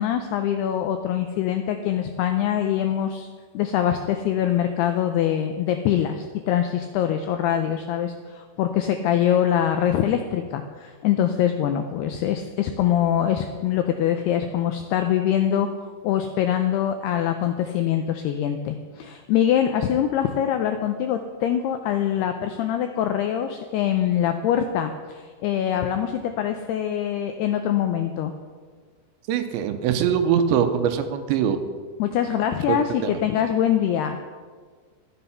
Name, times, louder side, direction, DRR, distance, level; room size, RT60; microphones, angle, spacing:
voice 1, 0.0-3.3 3.5-15.7 16.0-28.3 32.0-34.2, left 10 dB, 90° left, 7 dB, 2.3 m, -24 dB
voice 2, 29.3-31.6 32.7-33.1, right 8 dB, 80° right, 8 dB, 2.9 m, -22 dB
13.0 x 9.6 x 5.7 m, 1.5 s
omnidirectional pair, 5.4 m